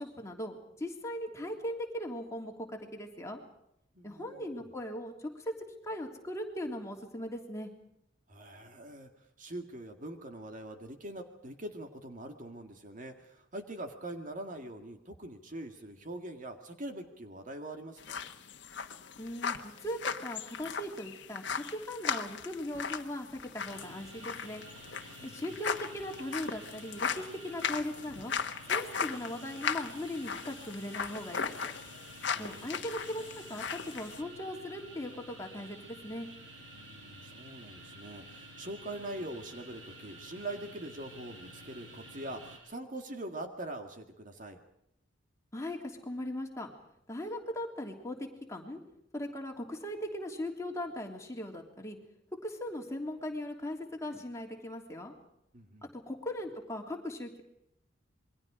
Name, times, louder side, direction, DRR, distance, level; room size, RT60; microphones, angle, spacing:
voice 1, 0.0-3.4 4.0-5.5 5.8-7.7 19.2-24.6 25.2-28.3 28.7-31.7 32.4-36.3 45.5-46.7 47.1-48.8 49.1-52.0 52.4-55.1 55.8-57.4, left 1 dB, 15° left, 1 dB, 3.2 m, -39 dB
voice 2, 3.9-4.7 8.3-18.3 25.2-25.6 32.3-32.9 36.7-44.6 55.5-55.9, right 1 dB, 45° right, 5 dB, 2.0 m, -43 dB
sound 1, 18.0-34.2, left 6 dB, 65° left, 1.3 m, -38 dB
sound 2, 23.6-42.6, right 1 dB, 80° right, 7.7 m, -51 dB
27.5 x 22.5 x 5.0 m, 0.80 s
head